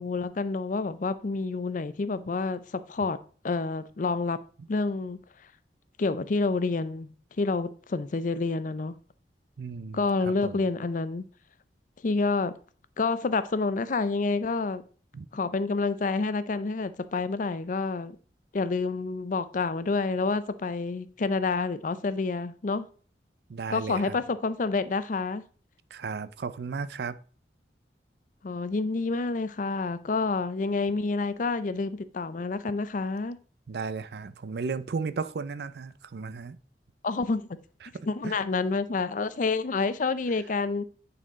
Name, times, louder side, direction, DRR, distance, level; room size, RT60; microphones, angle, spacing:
voice 1, 0.0-3.2 3.4-4.4 4.7-5.2 6.0-9.0 9.9-11.2 12.0-12.5 13.0-14.8 15.3-18.2 18.5-22.9 23.7-25.4 28.4-33.4 37.0-37.5 38.0-40.8, left 3 dB, 45° left, 0.5 m, -28 dB
voice 2, 9.6-10.0 10.4-10.7 15.1-15.3 23.5-24.2 25.9-27.2 33.7-36.6 38.2-38.4, right 5 dB, 65° right, 0.4 m, -34 dB
9.1 x 4.3 x 3.7 m
head